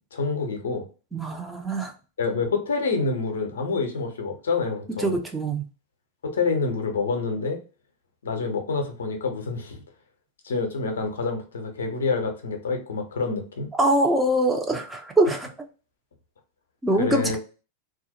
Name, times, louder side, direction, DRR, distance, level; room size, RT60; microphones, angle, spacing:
voice 1, 0.1-0.9 2.2-5.2 6.2-7.6 8.2-9.8 10.4-13.7 17.0-17.4, left 4 dB, 65° left, 0.6 m, -27 dB
voice 2, 1.1-1.9 5.0-5.6 13.8-15.5 16.8-17.4, right 1 dB, 10° right, 0.5 m, -23 dB
2.3 x 2.0 x 2.7 m
figure-of-eight pair, 90°, 0 cm